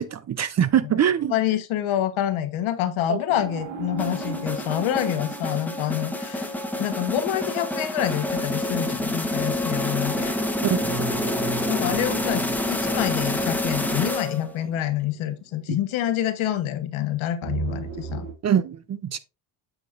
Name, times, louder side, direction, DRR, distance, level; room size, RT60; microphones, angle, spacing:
voice 1, 0.0-1.3 3.1-3.2 10.6-11.0 15.7-15.8 18.4-19.2, right 9 dB, 35° right, 0.5 m, -23 dB
voice 2, 1.3-6.5 6.8-10.3 11.7-18.3, left 11 dB, 75° left, 1.2 m, -27 dB
sound 1, 3.3-8.4 10.8-14.8 17.4-18.3, right 3 dB, 70° right, 2.3 m, -36 dB
sound 2, 4.0-14.6, left 1 dB, 5° left, 1.0 m, -28 dB
9.0 x 6.0 x 2.5 m
cardioid pair, 110°, 48 cm